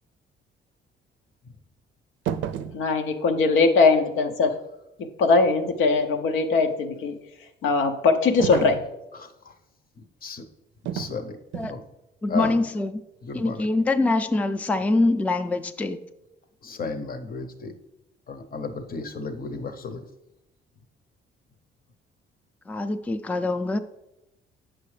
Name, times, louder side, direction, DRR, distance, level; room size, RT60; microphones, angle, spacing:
sound 1, 2.2-2.8 8.4-8.9 10.8-11.2 11.5-11.8, right 9 dB, 75° right, 0.5 m, -30 dB
voice 1, 2.7-4.5 5.2-7.1 7.6-8.8, left 4 dB, 85° left, 6 dB, 0.7 m, -20 dB
voice 2, 9.1-9.5 10.2-10.4 10.8-11.4 11.7-11.8 12.3-12.6 13.2-13.7 16.6-17.7 18.3-20.0, left 4 dB, 45° left, 9 dB, 0.8 m, -33 dB
voice 3, 12.2-13.0 13.3-16.0 22.7-23.8, left 2 dB, 5° left, 9 dB, 0.4 m, -24 dB
8.2 x 6.1 x 3.2 m, 0.92 s
cardioid pair, 90°, 20 cm